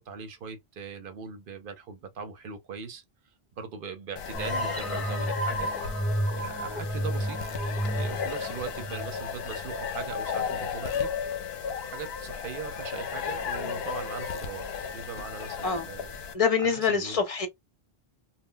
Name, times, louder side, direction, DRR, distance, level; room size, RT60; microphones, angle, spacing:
voice 1, 0.0-3.0 3.6-5.7 6.3-7.4 7.8-11.1 11.9-14.7 14.9-16.1 16.6-17.2, right 6 dB, 60° right, 0.8 m, -40 dB
sound 1, 4.2-16.3, left 7 dB, 75° left, 0.8 m, -34 dB
sound 2, 4.3-9.8, right 1 dB, ahead, 0.7 m, -31 dB
voice 2, 16.3-17.5, left 6 dB, 40° left, 0.7 m, -25 dB
2.1 x 2.1 x 3.7 m
omnidirectional pair, 1.1 m